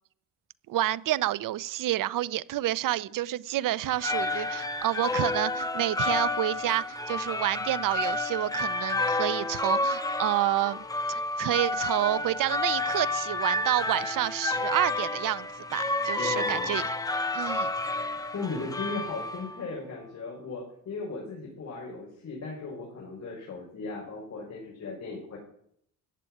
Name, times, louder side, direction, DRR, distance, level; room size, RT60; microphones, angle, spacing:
voice 1, 0.7-16.8 17.3-17.7, right 14 dB, 90° right, 18 dB, 0.7 m, -29 dB
sound 1, 3.8-19.7, left 2 dB, 10° left, 1.2 m, -30 dB
voice 2, 16.2-16.9 18.3-25.4, left 3 dB, 55° left, -2 dB, 5.8 m, -37 dB
15.0 x 9.9 x 9.2 m, 0.69 s
cardioid pair, 145°, 32 cm